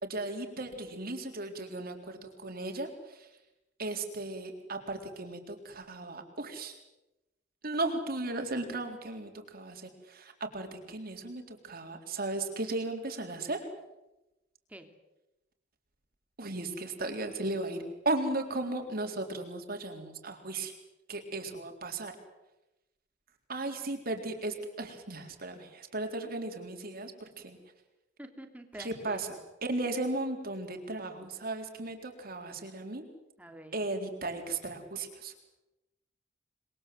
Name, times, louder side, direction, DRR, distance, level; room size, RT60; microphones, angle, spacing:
voice 1, 0.0-3.3 3.8-6.8 7.6-13.6 16.4-20.7 21.1-22.1 23.5-27.6 28.8-29.3 29.6-33.0 33.7-35.3, right 2 dB, 55° right, 4 dB, 3.9 m, -36 dB
voice 2, 28.2-29.4 33.4-33.8, equal, 10° right, 5 dB, 2.9 m, -47 dB
28.0 x 21.5 x 7.8 m, 0.97 s
head